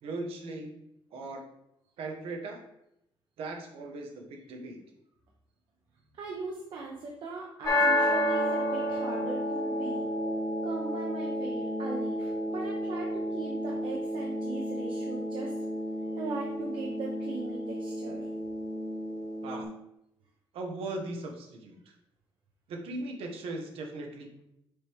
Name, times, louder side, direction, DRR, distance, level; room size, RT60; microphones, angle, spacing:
voice 1, 0.0-0.8 1.1-1.4 2.0-2.6 3.4-4.8 19.4-19.7 20.5-21.9 22.7-24.4, right 2 dB, 90° right, 3 dB, 1.2 m, -38 dB
voice 2, 6.1-10.0 10.6-15.5 16.1-18.3, right 4 dB, 60° right, -2 dB, 0.9 m, -39 dB
sound 1, 7.6-19.6, equal, 40° left, 1.6 m, -31 dB
6.7 x 4.6 x 3.5 m, 0.82 s
cardioid pair, 140°, 9 cm